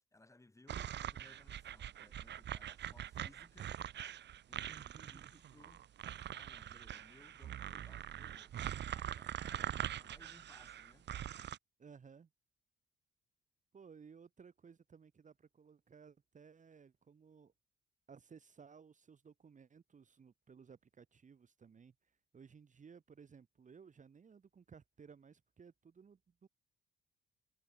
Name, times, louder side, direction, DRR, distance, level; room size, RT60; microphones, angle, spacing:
voice 1, 0.1-4.0 4.5-11.1, left 2 dB, 15° left, 6.6 m, -64 dB
sound 1, 0.7-11.6, right 11 dB, 60° right, 1.1 m, -43 dB
voice 2, 4.7-5.3 11.8-12.3 13.7-17.5 18.1-26.5, right 6 dB, 40° right, 2.0 m, -59 dB
cardioid pair, 90°, 20 cm